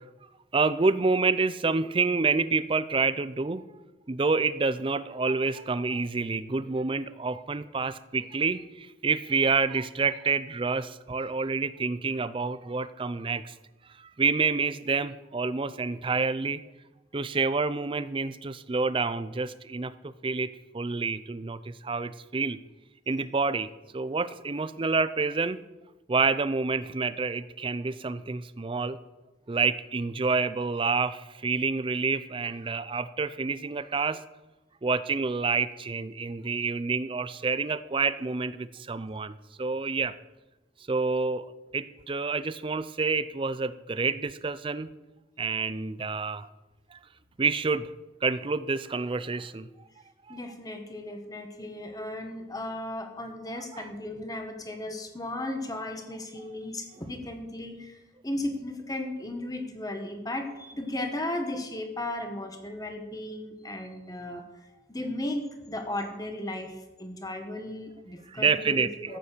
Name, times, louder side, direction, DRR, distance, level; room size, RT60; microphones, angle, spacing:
voice 1, 0.5-3.6 4.1-13.5 14.0-16.6 17.1-22.6 23.1-25.6 26.1-29.0 29.5-34.2 34.8-40.1 40.9-41.5 41.7-44.9 45.4-46.5 46.9-47.0 47.4-47.9 48.2-49.7 50.3-50.4 53.7-53.8 68.3-69.1, right 4 dB, 30° right, 15 dB, 0.5 m, -28 dB
voice 2, 50.3-58.0 58.2-64.4 64.9-69.2, left 1 dB, 20° left, 4 dB, 1.6 m, -35 dB
14.0 x 8.1 x 6.8 m, 1.1 s
head